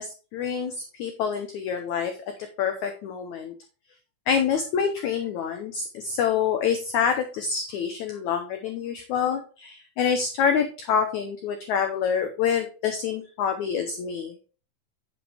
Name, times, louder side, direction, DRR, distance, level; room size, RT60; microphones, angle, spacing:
voice 1, 0.0-2.1 2.6-3.5 4.3-14.3, left 7 dB, 70° left, 6 dB, 2.0 m, -26 dB
10.5 x 7.0 x 3.6 m, 0.36 s
omnidirectional pair, 4.1 m